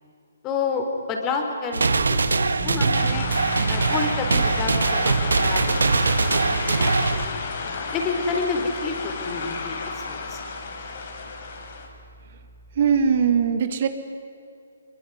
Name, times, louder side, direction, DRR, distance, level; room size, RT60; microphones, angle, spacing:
voice 1, 0.4-3.3 3.7-7.4 7.9-9.8 10.1-10.4, left 4 dB, 20° left, 4 dB, 4.2 m, -29 dB
sound 1, 1.7-7.3, right 3 dB, 80° right, 1.7 m, -22 dB
sound 2, 2.6-13.1, right 8 dB, 10° right, 1.6 m, -41 dB
sound 3, 3.0-11.9, left 4 dB, 50° left, 4.8 m, -32 dB
voice 2, 12.8-13.9, right 7 dB, 50° right, 8 dB, 2.0 m, -20 dB
23.5 x 23.0 x 9.6 m, 2.6 s
hypercardioid pair, 145°, 0 cm